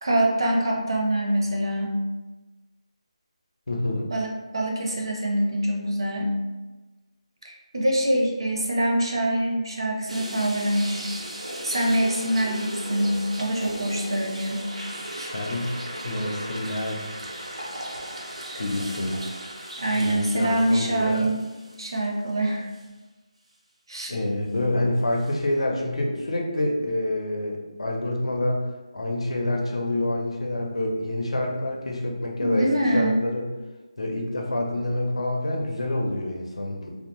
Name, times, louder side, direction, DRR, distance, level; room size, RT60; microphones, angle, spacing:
voice 1, 0.0-2.0 4.1-6.3 7.4-11.1 11.6-14.7 15.1-15.3 19.8-21.4 21.8-22.7 23.9-24.1 32.4-33.2, right 1 dB, 45° right, 0 dB, 0.5 m, -25 dB
voice 2, 3.7-4.1 15.3-15.7 16.0-17.1 18.6-19.2 19.9-21.3 24.1-28.6 28.9-33.5 34.0-37.0, left 1 dB, 65° left, 0 dB, 0.6 m, -27 dB
sound 1, 10.1-22.3 22.7-22.8 25.2-25.3, right 1 dB, 90° right, 0.7 m, -36 dB
2.6 x 2.0 x 3.0 m, 1.2 s
figure-of-eight pair, 180°, 3 cm